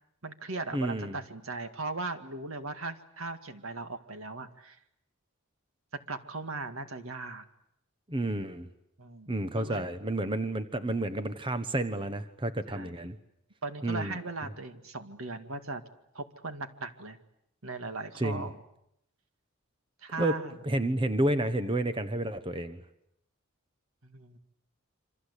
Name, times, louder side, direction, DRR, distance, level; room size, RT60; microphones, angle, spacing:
voice 1, 0.2-4.8 6.1-7.4 9.0-9.9 12.7-12.9 13.6-15.8 16.1-17.2 17.6-18.6 20.0-20.6 24.0-24.4, right 3 dB, 70° right, 8 dB, 2.1 m, -38 dB
voice 2, 0.7-1.2 8.1-8.7 9.3-13.2 13.8-14.1 18.2-18.5 20.2-20.3 20.6-22.8, right 1 dB, 25° right, 10 dB, 1.2 m, -30 dB
28.0 x 25.5 x 8.4 m, 0.79 s
head